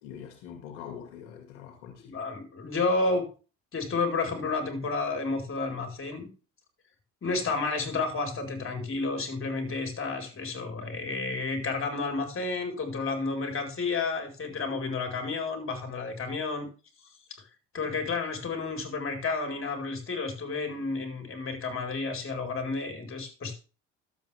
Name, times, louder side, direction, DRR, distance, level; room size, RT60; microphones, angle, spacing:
voice 1, 0.0-2.2, left 8 dB, 90° left, 2.4 m, -44 dB
voice 2, 2.0-3.3 3.7-6.3 7.2-16.7 17.7-23.6, left 3 dB, 35° left, 4.8 m, -31 dB
12.5 x 8.3 x 3.6 m
supercardioid pair, 80°, 36 cm